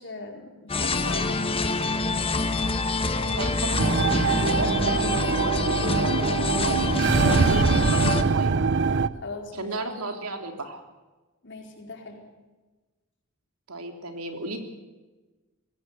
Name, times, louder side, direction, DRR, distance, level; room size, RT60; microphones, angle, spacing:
voice 1, 0.0-1.7 9.1-9.7 11.4-12.2, left 3 dB, 55° left, 2 dB, 4.4 m, -39 dB
sound 1, 0.7-8.2, left 3 dB, 25° left, 1.3 m, -26 dB
voice 2, 3.3-6.2 6.4-6.9 7.3-8.6 9.6-10.8 13.7-14.6, right 2 dB, 80° right, 5 dB, 3.2 m, -35 dB
sound 2, 3.8-9.1, right 4 dB, 55° right, 0.8 m, -23 dB
22.0 x 16.5 x 8.2 m, 1.2 s
head